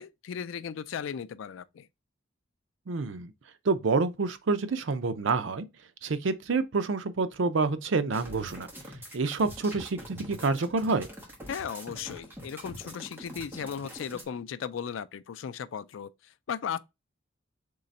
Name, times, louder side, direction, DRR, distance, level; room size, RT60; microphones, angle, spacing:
voice 1, 0.0-1.9 11.5-16.1 16.5-16.8, left 7 dB, 75° left, 0.4 m, -36 dB
voice 2, 2.9-3.3 3.7-5.7 6.0-8.7 9.1-11.1, right 4 dB, 70° right, 0.5 m, -28 dB
sound 1, 8.1-14.2, equal, 10° right, 1.1 m, -44 dB
3.8 x 3.3 x 4.0 m
head